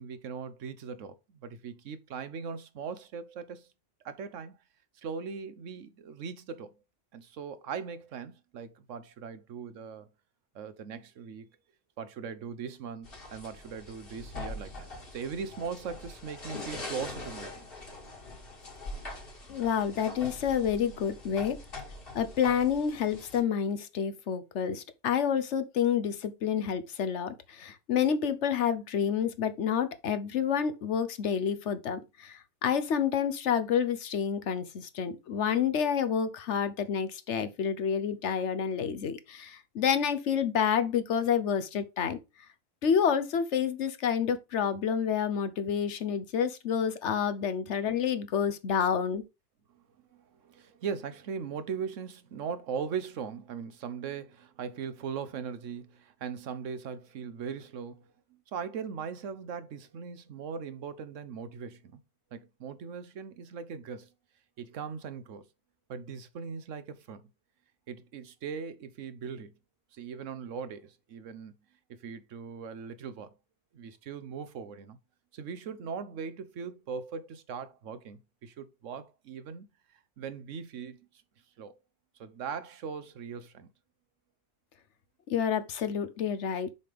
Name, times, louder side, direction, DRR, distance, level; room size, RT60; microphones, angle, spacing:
voice 1, 0.0-3.7 4.0-4.6 5.0-6.7 7.1-10.1 10.5-11.5 12.0-17.7 49.7-49.8 50.1-62.0 62.3-64.1 64.6-65.5 65.9-67.3 67.9-69.5 69.9-71.5 71.9-73.3 73.7-75.0 75.3-79.7 80.2-81.0 81.6-81.7 82.2-83.7, right 6 dB, 80° right, 1.2 m, -39 dB
sound 1, 13.1-23.4, left 2 dB, 50° left, 2.2 m, -43 dB
voice 2, 19.5-21.6 22.1-42.2 42.8-49.2 85.3-86.7, left 7 dB, 70° left, 1.1 m, -29 dB
6.7 x 5.1 x 3.5 m
omnidirectional pair, 1.3 m